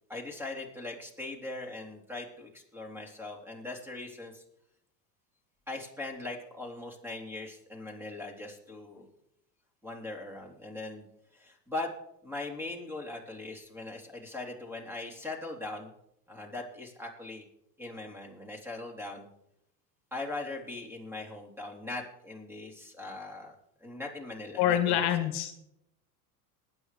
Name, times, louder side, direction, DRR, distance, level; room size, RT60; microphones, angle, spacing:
voice 1, 0.1-4.4 5.7-9.1 9.8-11.1 11.3-11.9 12.2-15.9 16.3-17.4 17.8-19.3 20.1-23.5 23.8-25.1, left 2 dB, 5° right, 1 dB, 3.3 m, -40 dB
voice 2, 24.6-25.5, left 11 dB, 55° left, 8 dB, 1.4 m, -26 dB
20.5 x 9.6 x 3.3 m, 0.80 s
hypercardioid pair, 85°, 48 cm